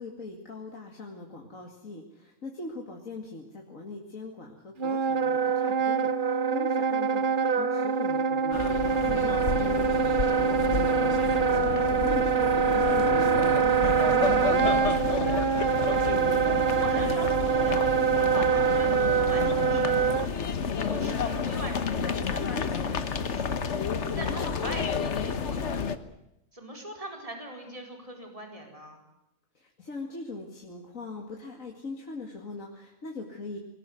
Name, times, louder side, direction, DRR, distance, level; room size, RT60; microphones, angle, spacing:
voice 1, 0.0-14.6 29.5-33.6, left 3 dB, 75° left, 1 dB, 2.7 m, -41 dB
Wind instrument woodwind instrument, 4.8-20.3, right 6 dB, 40° right, 1.1 m, -25 dB
sound 1, 8.5-26.0, left 5 dB, 60° left, 1.5 m, -30 dB
voice 2, 9.2-9.6 15.9-16.3 16.7-17.9 18.3-20.0 20.8-23.8 24.1-25.6 26.5-29.0, right 1 dB, 25° right, 3 dB, 4.7 m, -41 dB
21.5 x 19.0 x 9.4 m, 0.85 s
omnidirectional pair, 1.4 m